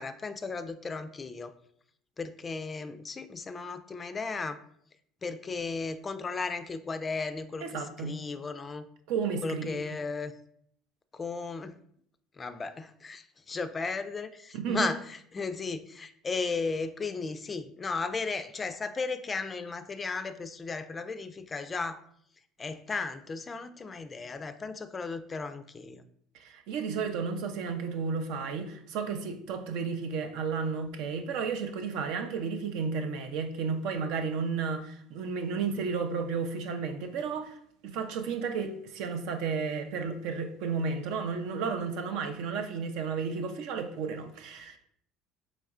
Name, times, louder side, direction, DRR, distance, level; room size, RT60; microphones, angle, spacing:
voice 1, 0.0-1.5 2.2-4.6 5.2-8.8 9.4-10.3 11.1-11.8 12.4-22.0 22.6-26.0, left 4 dB, 30° left, 0.3 m, -35 dB
voice 2, 7.6-8.2 9.1-9.8 14.5-14.9 26.4-37.6 37.8-44.8, right 5 dB, 70° right, 0.5 m, -32 dB
4.2 x 3.0 x 2.4 m
hypercardioid pair, 80°, 0 cm